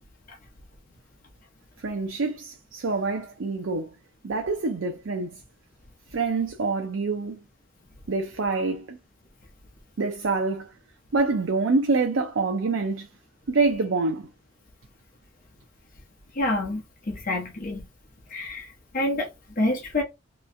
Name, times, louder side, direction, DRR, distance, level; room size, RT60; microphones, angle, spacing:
voice 1, 1.8-3.9 4.2-5.3 6.1-7.4 8.1-9.0 10.0-10.7 11.1-13.1 13.5-14.3, right 3 dB, 70° right, 0.5 m, -26 dB
voice 2, 16.3-17.9 18.3-19.3 19.6-20.0, left 1 dB, 40° left, 1.0 m, -27 dB
3.1 x 3.0 x 2.5 m
head